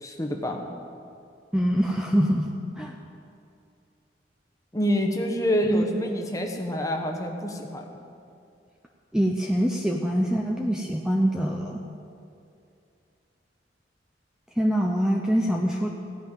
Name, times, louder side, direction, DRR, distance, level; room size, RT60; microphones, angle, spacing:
voice 1, 0.0-0.6 4.7-7.9, equal, 20° left, 2 dB, 1.1 m, -27 dB
voice 2, 1.5-2.5 2.8-2.9 5.7-5.8 9.1-11.8 14.6-15.9, equal, 5° right, 0 dB, 0.6 m, -24 dB
16.5 x 5.7 x 9.0 m, 2.5 s
head